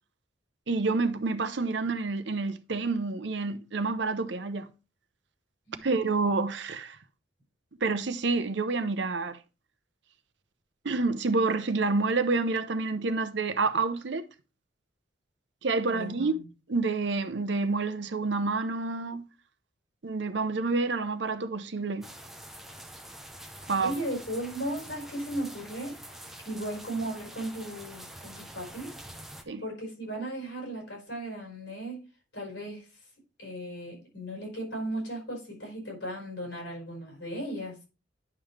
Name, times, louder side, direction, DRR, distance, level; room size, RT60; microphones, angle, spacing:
voice 1, 0.7-4.7 5.8-7.0 7.8-9.4 10.8-14.3 15.6-16.4 16.7-19.3 20.0-22.1 23.7-23.9 29.5-29.6, right 3 dB, 60° right, 0.8 m, -28 dB
voice 2, 15.9-16.5 23.6-29.0 29.6-32.0 32.3-32.9 33.4-37.8, right 1 dB, 65° left, 5.0 m, -36 dB
sound 1, 22.0-29.4, right 1 dB, ahead, 0.8 m, -46 dB
10.5 x 5.4 x 3.3 m
head